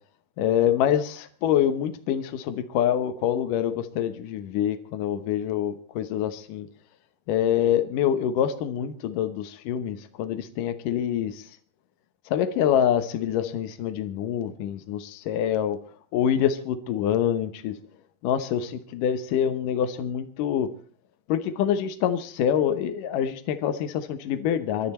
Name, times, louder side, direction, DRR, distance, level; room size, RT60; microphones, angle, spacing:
voice 1, 0.4-6.7 7.3-11.5 12.3-15.8 16.1-17.8 18.2-20.7 21.3-24.9, left 9 dB, 70° left, 8 dB, 2.0 m, -26 dB
26.0 x 12.0 x 4.3 m, 0.40 s
omnidirectional pair, 5.1 m